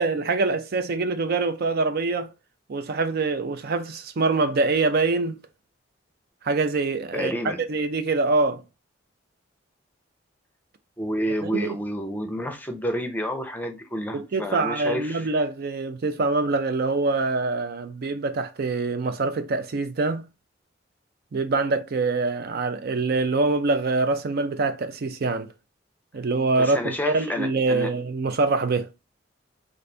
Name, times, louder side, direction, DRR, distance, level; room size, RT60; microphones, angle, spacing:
voice 1, 0.0-2.3 2.7-5.4 6.4-7.3 7.7-8.6 11.4-11.8 14.1-20.2 21.3-25.5 26.1-28.9, right 3 dB, 55° right, 0.5 m, -24 dB
voice 2, 7.1-7.6 11.0-15.3 26.6-27.9, equal, 10° left, 0.6 m, -29 dB
4.0 x 2.5 x 3.2 m
head